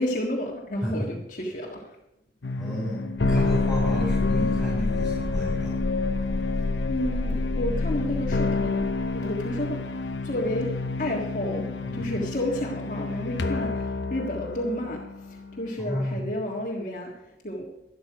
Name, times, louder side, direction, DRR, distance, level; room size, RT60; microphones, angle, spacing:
voice 1, 0.0-2.0 6.9-9.8 10.2-11.7 11.9-17.7, left 1 dB, 45° left, -2 dB, 1.7 m, -31 dB
sound 1, 2.4-15.8, left 3 dB, 85° left, 0.8 m, -28 dB
voice 2, 2.6-5.7 11.8-12.2 15.8-16.2, equal, ahead, -9 dB, 6.6 m, -31 dB
12.5 x 12.0 x 5.0 m, 0.86 s
head